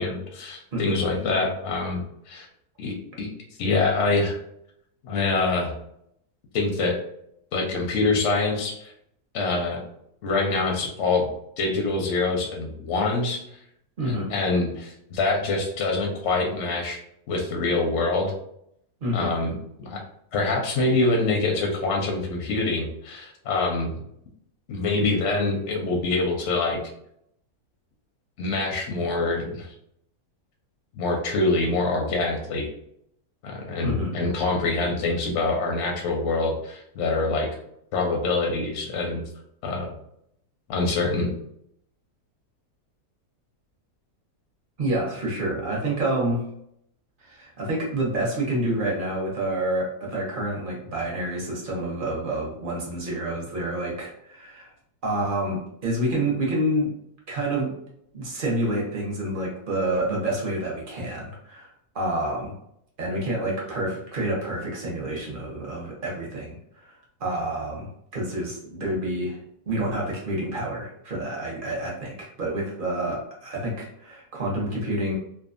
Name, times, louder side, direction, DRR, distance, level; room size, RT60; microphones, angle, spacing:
voice 1, 0.0-2.5 2.8-3.3 3.6-4.4 5.0-5.7 6.5-7.0 7.5-8.8 9.3-9.8 10.2-11.3 11.6-13.4 14.0-17.0 17.3-18.3 19.1-20.0 20.3-23.9 24.7-26.8 28.4-29.7 30.9-32.7 33.4-37.5 37.9-39.2 39.6-39.9 40.7-41.3, left 3 dB, 65° left, 1 dB, 0.7 m, -25 dB
voice 2, 14.0-14.3 19.0-19.3 33.8-34.1 44.8-46.4 47.2-54.7 55.0-56.9 57.3-57.7 58.1-61.7 61.9-62.5 63.0-66.9 67.2-69.4 69.7-75.2, right 1 dB, 45° right, -2 dB, 0.7 m, -28 dB
2.6 x 2.2 x 2.4 m, 0.73 s
omnidirectional pair, 1.6 m